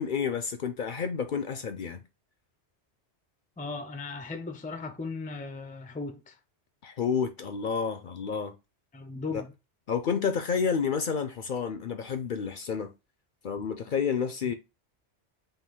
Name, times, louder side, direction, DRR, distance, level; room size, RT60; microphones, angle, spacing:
voice 1, 0.0-2.0 6.8-8.5 9.9-12.9 13.4-14.5, left 6 dB, 55° left, 0.6 m, -30 dB
voice 2, 3.6-6.4 8.9-9.5 14.4-14.5, left 3 dB, 10° left, 0.4 m, -37 dB
5.6 x 2.6 x 3.6 m
omnidirectional pair, 1.2 m